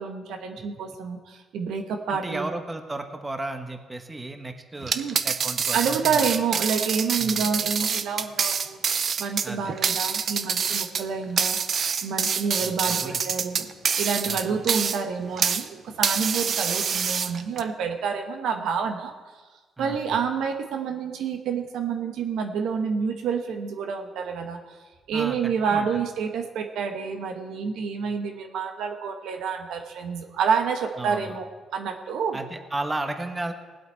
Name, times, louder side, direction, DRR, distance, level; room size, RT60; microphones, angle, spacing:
voice 1, 0.0-2.5 4.9-5.2 5.7-8.8 9.2-11.6 12.0-13.7 14.0-19.1 19.8-24.8 25.1-31.5 31.7-32.4, right 6 dB, 80° right, 5 dB, 1.2 m, -28 dB
voice 2, 2.1-4.9 5.2-6.3 7.2-7.5 9.4-9.7 12.6-13.2 14.3-14.6 19.8-20.2 25.1-25.4 25.7-26.0 31.0-31.4 32.3-33.5, right 2 dB, 20° right, 6 dB, 1.2 m, -34 dB
sound 1, 4.8-15.7 16.0-17.6, right 6 dB, 55° right, 0.6 m, -26 dB
19.0 x 7.9 x 4.5 m, 1.4 s
cardioid pair, 90°, 0 cm